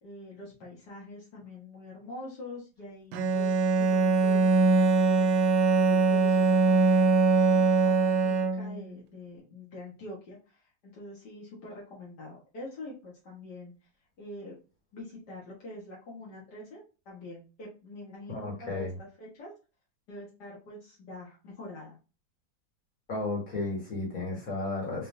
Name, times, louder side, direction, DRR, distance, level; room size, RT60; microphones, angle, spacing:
voice 1, 0.0-13.7 14.2-14.6 14.9-19.5 20.1-22.0, left 1 dB, 80° left, -4 dB, 2.0 m, -45 dB
Bowed string instrument, 3.1-8.9, right 3 dB, 90° right, 1.2 m, -22 dB
voice 2, 18.3-18.9 23.1-25.1, left 2 dB, 55° left, -2 dB, 2.4 m, -33 dB
4.2 x 3.7 x 2.6 m, 0.31 s
omnidirectional pair, 1.7 m